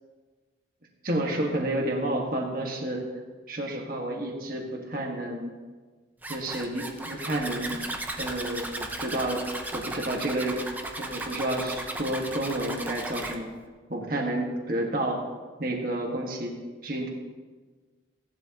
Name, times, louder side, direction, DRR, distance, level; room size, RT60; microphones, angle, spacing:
voice 1, 1.0-3.1 3.5-5.5 6.3-7.8 8.2-9.4 9.7-10.6 11.0-13.5 13.9-15.2 15.6-16.5 16.8-17.1, right 1 dB, 50° right, 0 dB, 1.6 m, -30 dB
Zipper (clothing), 6.2-13.4, right 1 dB, 10° right, 0.8 m, -36 dB
17.0 x 11.5 x 3.0 m, 1.4 s
head